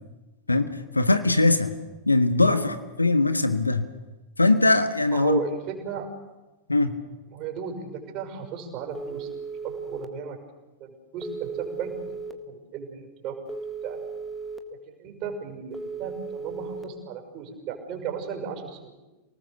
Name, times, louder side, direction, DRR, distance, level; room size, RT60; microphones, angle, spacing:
voice 1, 0.5-1.7 2.1-3.9 4.4-5.4 6.7-6.9, left 2 dB, 85° left, 10 dB, 1.5 m, -21 dB
voice 2, 5.1-6.1 7.3-9.3 9.6-10.4 10.8-13.4 13.8-14.1 14.9-19.0, right 7 dB, 40° right, 4 dB, 6.2 m, -35 dB
Telephone, 9.0-10.1 11.2-12.3 13.5-14.6 15.7-16.8, right 4 dB, ahead, 1.7 m, -36 dB
28.5 x 19.0 x 6.9 m, 1.1 s
figure-of-eight pair, 90°, 0 cm